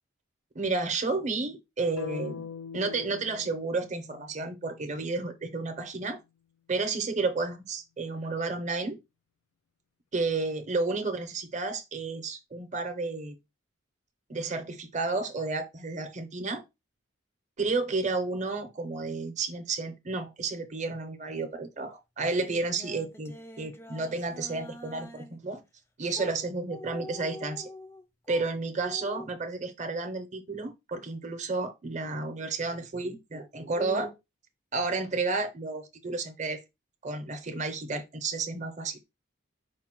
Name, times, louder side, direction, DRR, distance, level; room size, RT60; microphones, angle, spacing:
voice 1, 0.5-2.5 2.7-6.2 6.7-9.0 10.1-13.4 14.3-16.6 17.6-25.6 26.0-27.7 28.3-34.2 34.7-36.6 37.0-39.0, right 3 dB, 35° right, 0.7 m, -31 dB
sound 1, 2.0-6.0, left 6 dB, 85° left, 0.4 m, -43 dB
sound 2, 22.2-25.4 26.1-26.3 26.6-28.5 28.8-29.3, left 1 dB, 10° left, 0.4 m, -45 dB
4.9 x 2.1 x 4.4 m
head